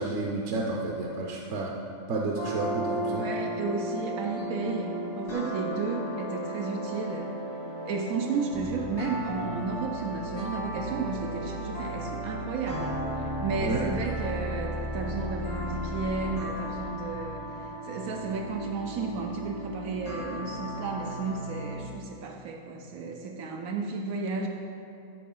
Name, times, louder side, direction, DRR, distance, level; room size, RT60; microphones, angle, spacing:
voice 1, 0.0-1.7 2.1-3.2 13.6-13.8, right 2 dB, 60° right, 0 dB, 1.0 m, -30 dB
sound 1, 2.4-21.7, equal, 80° left, 2.8 m, -35 dB
voice 2, 3.2-7.3 7.9-24.5, right 4 dB, 90° right, 1 dB, 1.1 m, -33 dB
14.0 x 4.7 x 3.8 m, 2.6 s
omnidirectional pair, 1.5 m